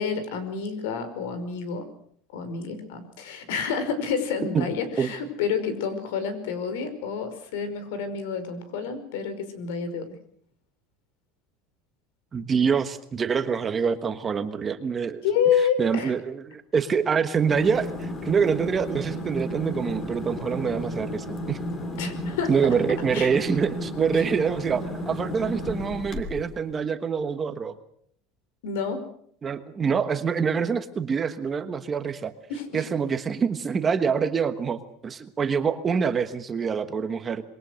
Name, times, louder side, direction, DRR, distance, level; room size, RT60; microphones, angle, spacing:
voice 1, 0.0-1.8 2.3-10.0 15.2-16.1 22.0-22.5 23.1-23.3 28.6-29.0 32.5-32.8, left 6 dB, 85° left, 11 dB, 5.1 m, -28 dB
voice 2, 12.3-15.2 15.8-21.6 22.5-27.7 29.4-32.3 32.7-37.4, right 6 dB, 20° right, 9 dB, 1.3 m, -25 dB
sound 1, 17.4-26.6, left 1 dB, 25° left, 3.1 m, -33 dB
26.5 x 22.0 x 6.4 m, 0.64 s
cardioid pair, 170°, 0 cm